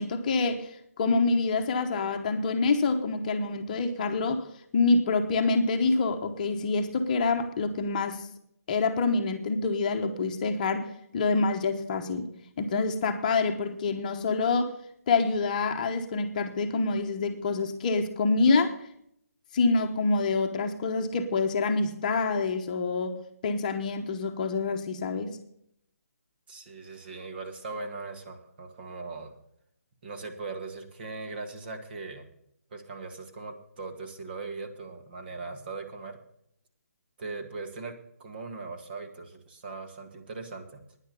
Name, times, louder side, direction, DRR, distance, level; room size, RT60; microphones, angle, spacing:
voice 1, 0.0-4.5 4.7-8.3 8.7-12.3 12.6-14.8 15.1-18.7 19.5-25.4, left 3 dB, 30° left, 5 dB, 1.0 m, -26 dB
voice 2, 26.5-29.3 30.0-32.3 32.7-36.2 37.2-40.8, right 3 dB, 40° right, 5 dB, 2.0 m, -39 dB
10.0 x 10.0 x 6.9 m, 0.71 s
hypercardioid pair, 160°, 8 cm